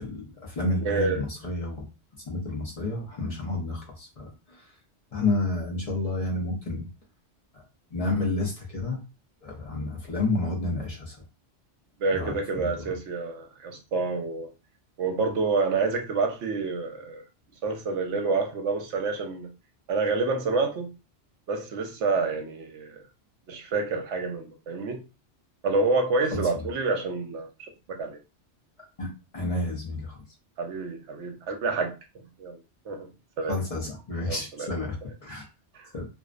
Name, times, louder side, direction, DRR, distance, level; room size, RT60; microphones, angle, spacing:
voice 1, 0.0-1.9 2.3-4.6 5.1-6.9 7.9-9.0 9.4-11.2 12.1-12.8 26.3-26.7 29.0-29.1 29.3-30.2 33.5-34.9 35.2-35.5 35.9-36.1, left 2 dB, 40° left, 0.6 m, -30 dB
voice 2, 0.8-1.2 12.0-14.5 15.0-17.2 17.6-19.5 19.9-20.9 21.5-23.0 23.5-25.0 25.6-27.5 28.0-28.2 30.6-31.9 32.4-32.6 32.9-33.1 33.4-33.6 34.3-34.7 35.0-35.1 35.7-35.9, right 3 dB, 75° right, 0.9 m, -28 dB
2.5 x 2.0 x 2.4 m
omnidirectional pair, 1.2 m